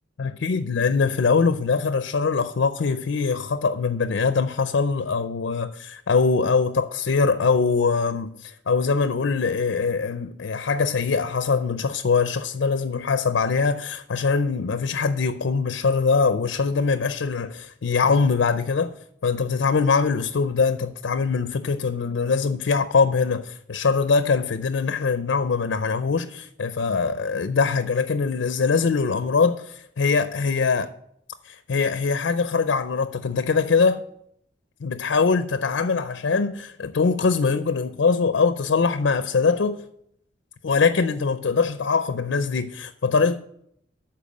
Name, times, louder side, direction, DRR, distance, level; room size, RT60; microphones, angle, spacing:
voice 1, 0.2-18.9 19.2-30.9 31.4-34.0 34.8-39.8 40.6-43.4, left 4 dB, 80° left, 0.5 m, -22 dB
12.5 x 4.4 x 6.3 m
head